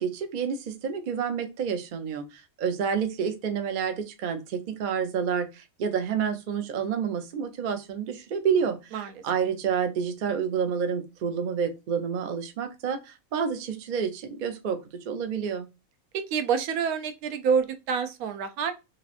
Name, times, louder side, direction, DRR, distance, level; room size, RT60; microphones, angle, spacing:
voice 1, 0.0-15.7, right 7 dB, 60° right, 0.5 m, -29 dB
voice 2, 8.9-9.2 16.1-18.7, right 6 dB, 85° right, 1.1 m, -27 dB
3.1 x 2.7 x 2.4 m
omnidirectional pair, 1.5 m